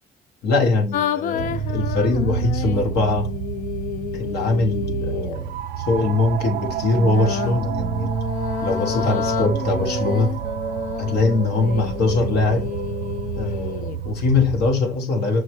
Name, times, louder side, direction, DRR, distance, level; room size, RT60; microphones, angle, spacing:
voice 1, 0.4-3.3 4.1-8.1 8.6-10.4 11.0-12.7 13.4-15.4, left 3 dB, 75° left, 1.2 m, -22 dB
sound 1, 0.9-5.4 6.9-14.0, left 10 dB, 50° left, 0.4 m, -30 dB
sound 2, 1.4-14.8, right 9 dB, 80° right, 0.5 m, -28 dB
6.3 x 2.1 x 3.1 m
cardioid pair, 110°, 17 cm